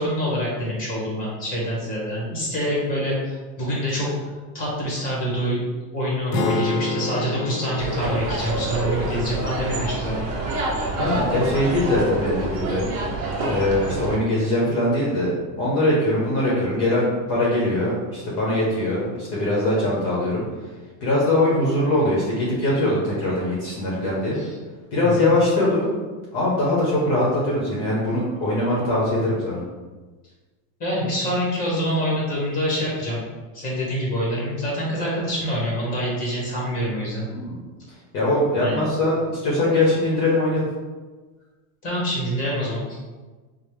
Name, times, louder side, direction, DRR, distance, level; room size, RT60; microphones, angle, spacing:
voice 1, 0.0-4.1 4.5-5.6 5.9-10.2 24.3-24.5 25.0-25.3 30.8-33.2 33.5-37.3 38.6-38.8 41.8-43.0, equal, 20° left, -5 dB, 1.1 m, -26 dB
sound 1, 6.3-10.5, left 4 dB, 70° left, 0.6 m, -30 dB
sound 2, 7.8-14.2, right 2 dB, 35° right, 0.6 m, -27 dB
voice 2, 11.0-12.8 13.4-15.3 15.6-20.4 21.0-24.4 24.9-25.9 26.3-29.6 37.3-37.5 38.1-40.6, left 1 dB, 40° left, -6 dB, 0.9 m, -22 dB
5.1 x 2.0 x 3.1 m, 1.3 s
supercardioid pair, 170°, 46 cm